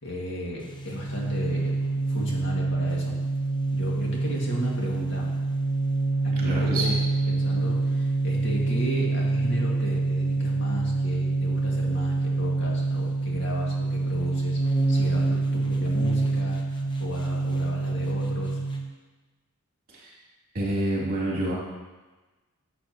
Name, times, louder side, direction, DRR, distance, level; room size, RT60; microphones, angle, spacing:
voice 1, 0.0-1.8 2.1-3.2 3.7-5.3 6.2-6.9 7.3-14.6 14.9-18.6, equal, 55° left, -3 dB, 1.8 m, -35 dB
sound 1, 0.6-18.9, right 2 dB, 20° left, 0.8 m, -26 dB
voice 2, 6.3-7.0 19.9-20.2 20.5-21.6, right 1 dB, 40° right, -6 dB, 2.7 m, -28 dB
11.5 x 7.3 x 2.8 m, 1.2 s
head